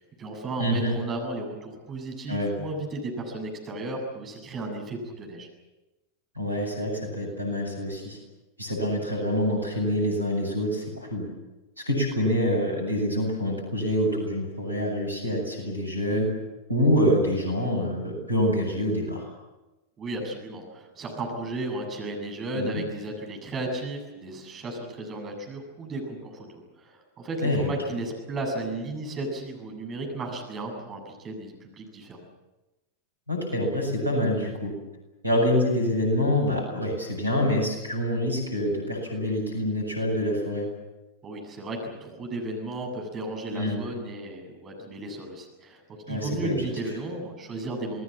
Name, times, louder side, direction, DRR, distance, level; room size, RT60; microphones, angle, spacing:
voice 1, 0.0-5.5 20.0-32.2 41.2-45.8 46.1-48.0, right 2 dB, 25° right, 2 dB, 7.7 m, -34 dB
voice 2, 0.6-0.9 2.3-2.5 6.4-8.2 8.6-11.3 11.8-16.3 16.7-19.3 22.5-22.8 27.4-27.7 33.3-34.7 35.2-40.7 43.5-43.8 46.1-46.7, equal, 85° right, 2 dB, 7.8 m, -26 dB
27.5 x 20.5 x 7.5 m, 1.1 s
figure-of-eight pair, 90°, 0 cm